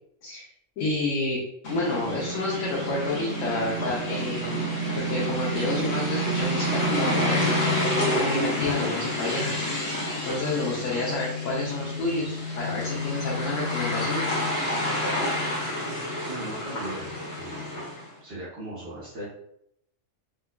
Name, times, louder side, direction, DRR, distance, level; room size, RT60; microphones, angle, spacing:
voice 1, 0.8-1.4 1.6-4.6 5.0-9.5 9.9-14.2, left 2 dB, 80° left, -5 dB, 1.1 m, -29 dB
sound 1, 1.6-18.1, equal, 60° left, 1.3 m, -28 dB
voice 2, 16.3-17.8 18.2-19.3, right 1 dB, 60° right, -9 dB, 1.3 m, -38 dB
4.6 x 2.2 x 2.2 m, 0.73 s
omnidirectional pair, 1.3 m